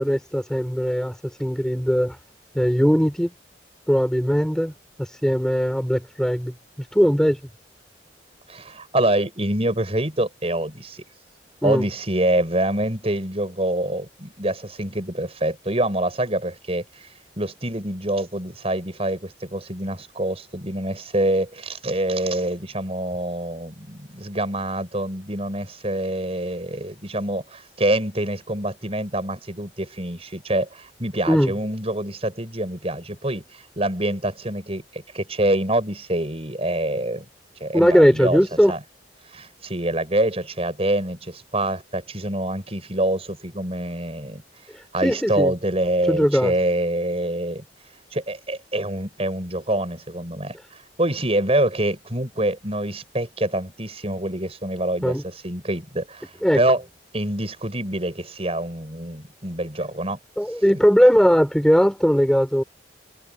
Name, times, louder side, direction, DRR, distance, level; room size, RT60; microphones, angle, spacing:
voice 1, 0.0-2.2 2.5-3.3 3.9-4.7 5.0-6.5 6.9-7.4 11.6-11.8 31.3-31.5 37.7-38.7 45.0-45.5 46.1-46.5 55.0-55.2 56.4-56.6 60.4-62.6, equal, 5° left, 4.6 m, -19 dB
voice 2, 8.5-11.0 11.6-17.1 17.4-37.2 37.6-38.4 38.7-38.8 39.3-44.4 44.9-47.6 48.1-56.3 56.6-56.8 57.1-60.2 60.7-60.8, right 1 dB, 35° right, 6.3 m, -26 dB
head